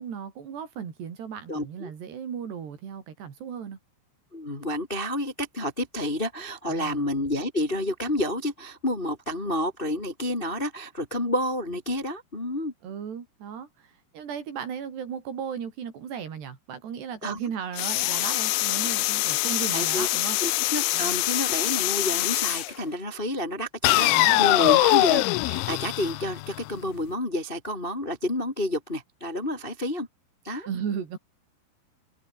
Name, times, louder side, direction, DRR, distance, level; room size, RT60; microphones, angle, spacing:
voice 1, 0.0-3.8 6.7-7.1 12.8-20.4 20.9-21.3 24.1-24.8 30.7-31.2, right 7 dB, 65° right, 5.5 m, -36 dB
voice 2, 1.5-1.9 4.3-12.7 17.2-17.4 19.7-20.1 20.4-30.1 30.4-30.7, left 1 dB, 15° left, 1.9 m, -29 dB
sound 1, 17.8-22.7 23.8-26.8, left 21 dB, 90° left, 3.2 m, -23 dB
omnidirectional pair, 5.3 m